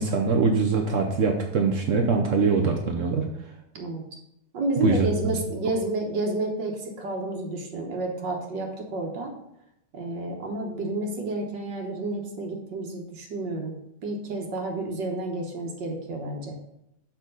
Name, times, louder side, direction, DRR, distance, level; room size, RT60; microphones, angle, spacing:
voice 1, 0.0-3.3 4.8-5.1, right 4 dB, 85° right, 2 dB, 0.6 m, -23 dB
voice 2, 4.5-9.3 9.9-13.7 14.0-16.6, right 2 dB, 60° right, 2 dB, 1.6 m, -30 dB
7.2 x 5.8 x 3.9 m, 0.80 s
omnidirectional pair, 2.3 m